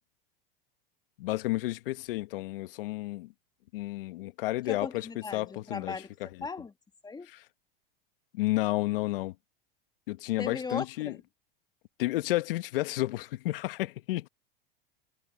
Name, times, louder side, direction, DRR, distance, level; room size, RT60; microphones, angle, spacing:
voice 1, 1.2-3.3 3.7-6.3 7.3-7.4 8.3-9.3 10.1-11.2 12.0-14.3, left 18 dB, 70° left, 1.5 m, -31 dB
voice 2, 4.7-6.1 6.4-6.7 7.0-7.3 10.4-11.2, left 4 dB, 15° left, 2.5 m, -38 dB
hypercardioid pair, 105°, 29 cm